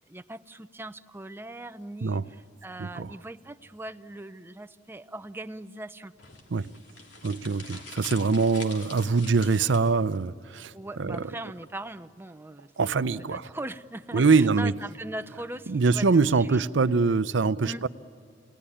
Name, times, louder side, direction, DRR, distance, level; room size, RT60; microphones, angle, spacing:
voice 1, 0.1-6.1 10.7-16.7 17.6-17.8, right 1 dB, 15° right, 0.6 m, -40 dB
voice 2, 2.8-3.1 6.5-6.7 7.2-11.2 12.8-13.5 14.1-14.8 15.7-17.9, right 4 dB, 80° right, 0.6 m, -24 dB
sound 1, 6.2-10.2, left 3 dB, 85° left, 2.6 m, -45 dB
28.5 x 19.0 x 10.0 m
head